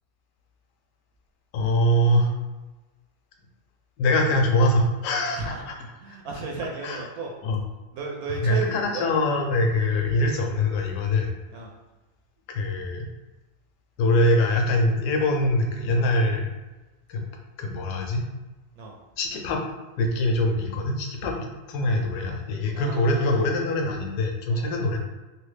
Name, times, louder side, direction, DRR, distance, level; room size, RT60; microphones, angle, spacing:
voice 1, 1.5-2.3 4.0-5.7 6.1-6.2 6.8-7.0 7.4-7.6 8.4-11.3 12.5-13.1 14.0-16.5 17.1-17.2 17.6-18.3 19.2-19.6 20.0-25.0, left 1 dB, 90° left, 2 dB, 1.2 m, -23 dB
voice 2, 5.3-5.6 6.0-7.3 7.9-9.1 11.5-11.7 18.8-19.0 22.6-23.4 24.5-24.7, right 4 dB, 75° right, -1 dB, 1.0 m, -34 dB
3.2 x 2.4 x 3.1 m, 1.2 s
omnidirectional pair, 1.7 m